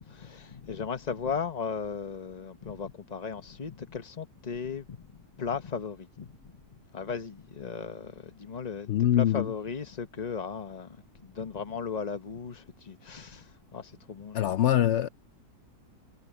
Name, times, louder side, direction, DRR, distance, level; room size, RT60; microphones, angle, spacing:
voice 1, 0.0-8.9 9.2-14.5, left 6 dB, 30° left, 0.9 m, -37 dB
voice 2, 8.9-9.5 14.3-15.1, left 11 dB, 75° left, 0.6 m, -23 dB
omnidirectional pair, 1.8 m